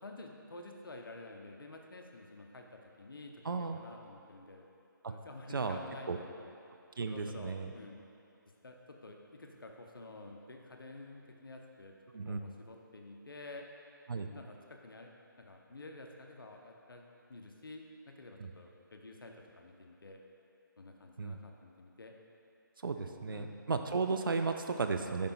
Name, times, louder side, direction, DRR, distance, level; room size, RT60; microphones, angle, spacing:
voice 1, 0.0-4.7 5.1-6.5 7.1-8.0 8.6-11.9 12.3-13.7 14.2-15.1 15.4-17.0 17.3-20.2 20.8-22.1 23.0-23.5, left 2 dB, 85° left, 2 dB, 0.8 m, -50 dB
voice 2, 3.4-3.8 5.0-5.1 5.5-5.8 6.1-6.2 7.0-7.7 12.1-12.4 14.1-14.3 18.4-18.5 21.2-21.4 22.8-25.3, right 4 dB, 80° right, 6 dB, 0.5 m, -34 dB
5.2 x 5.2 x 4.4 m, 2.7 s
figure-of-eight pair, 150°, 11 cm